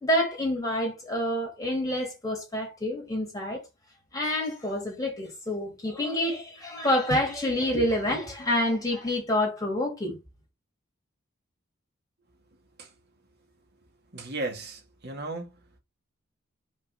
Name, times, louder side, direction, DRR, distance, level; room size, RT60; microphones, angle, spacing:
voice 1, 0.0-3.6 4.1-10.2, left 1 dB, 15° left, 3.1 m, -27 dB
voice 2, 14.1-15.6, right 2 dB, 50° right, 2.3 m, -35 dB
5.5 x 4.5 x 5.8 m
head